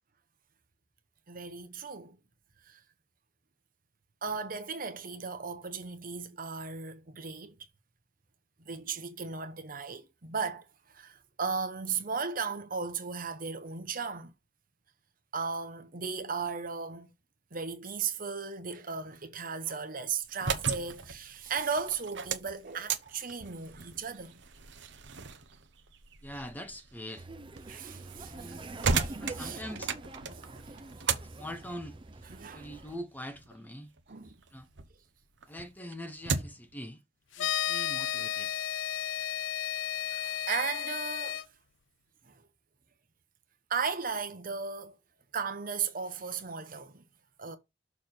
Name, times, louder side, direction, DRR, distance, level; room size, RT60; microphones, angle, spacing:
voice 1, 1.3-2.2 2.6-2.8 4.2-7.5 8.7-14.3 15.3-17.1 17.5-24.4 27.7-28.6 29.0-29.6 30.3-30.5 32.4-32.7 34.1-34.3 40.0-41.4 42.2-42.4 43.7-45.0 45.3-47.0 47.4-47.6, right 5 dB, 50° right, 1.1 m, -36 dB
sound 1, 20.2-34.9 35.3-36.7, right 5 dB, 70° right, 0.9 m, -37 dB
voice 2, 26.2-27.3 28.3-28.7 29.2-29.9 31.3-32.0 32.5-33.9 34.5-34.7 35.5-37.0 37.4-38.5, equal, 10° left, 0.9 m, -43 dB
Laughter, 27.2-33.0, right 2 dB, 25° right, 0.6 m, -45 dB
sound 2, 37.4-41.4, left 10 dB, 85° left, 0.5 m, -33 dB
6.7 x 3.4 x 5.9 m
head